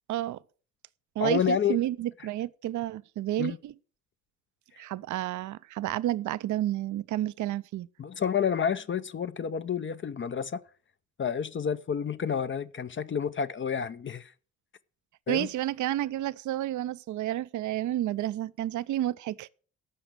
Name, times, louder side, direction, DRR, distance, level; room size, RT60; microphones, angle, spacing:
voice 1, 0.1-0.4 1.2-3.7 4.8-7.9 15.3-19.5, right 13 dB, 45° right, 0.6 m, -30 dB
voice 2, 1.2-1.8 3.4-3.6 8.0-10.6 11.2-14.3 15.3-15.5, left 7 dB, 25° left, 0.6 m, -29 dB
14.0 x 5.8 x 6.3 m
figure-of-eight pair, 45°, 44 cm